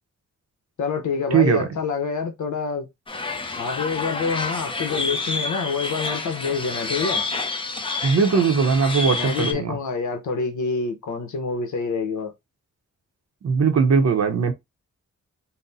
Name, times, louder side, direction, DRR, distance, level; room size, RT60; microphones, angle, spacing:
voice 1, 0.8-2.9 3.6-7.3 9.2-12.3, left 5 dB, 75° left, 0.9 m, -27 dB
voice 2, 1.3-1.7 8.0-9.8 13.4-14.5, right 5 dB, 60° right, 0.7 m, -19 dB
sound 1, 3.1-9.5, left 3 dB, 20° left, 0.5 m, -29 dB
4.0 x 2.1 x 3.9 m
wide cardioid pair, 150°, 30 cm